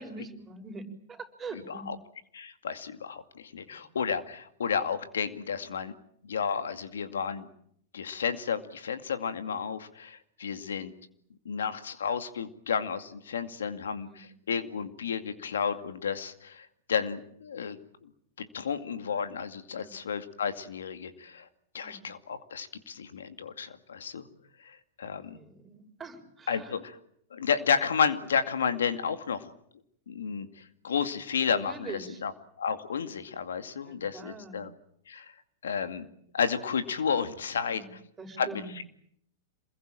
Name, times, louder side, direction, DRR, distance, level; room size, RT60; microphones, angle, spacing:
voice 1, 0.0-1.9 3.6-3.8 7.2-7.4 14.0-14.3 19.7-19.9 21.8-22.1 25.1-26.8 31.6-32.2 33.8-34.6 37.6-38.7, right 4 dB, 20° right, 3 dB, 6.5 m, -44 dB
voice 2, 2.3-5.9 6.2-7.5 7.9-10.9 11.5-18.1 18.5-21.5 21.7-24.2 24.6-25.4 26.5-26.8 27.3-29.5 30.1-32.3 32.6-34.7 35.1-35.3 35.6-36.1 36.3-37.8 38.4-38.6, left 6 dB, 80° left, 9 dB, 2.2 m, -32 dB
27.5 x 22.0 x 9.0 m, 0.69 s
hypercardioid pair, 105°, 0 cm